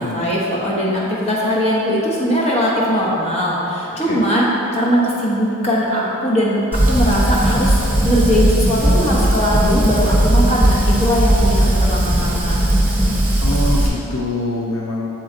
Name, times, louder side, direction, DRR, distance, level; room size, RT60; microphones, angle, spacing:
voice 1, 0.0-12.8, equal, 30° left, -5 dB, 1.1 m, -20 dB
Fire, 6.7-13.9, right 1 dB, 10° right, 0.8 m, -16 dB
voice 2, 13.4-15.1, left 2 dB, 65° left, -3 dB, 0.6 m, -24 dB
6.8 x 4.5 x 3.8 m, 2.9 s
head